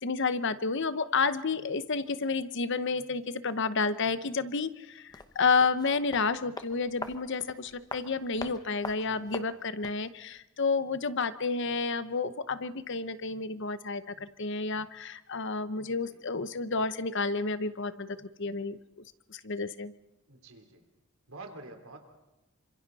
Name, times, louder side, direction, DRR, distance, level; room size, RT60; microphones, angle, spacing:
voice 1, 0.0-18.8 19.3-19.9, left 4 dB, 60° left, 13 dB, 0.9 m, -30 dB
sound 1, 5.1-10.1 10.3-10.4, left 2 dB, 20° left, 1.0 m, -43 dB
voice 2, 20.3-20.8 21.3-22.0, right 2 dB, 85° right, 4 dB, 3.6 m, -48 dB
28.0 x 26.0 x 4.2 m, 0.95 s
head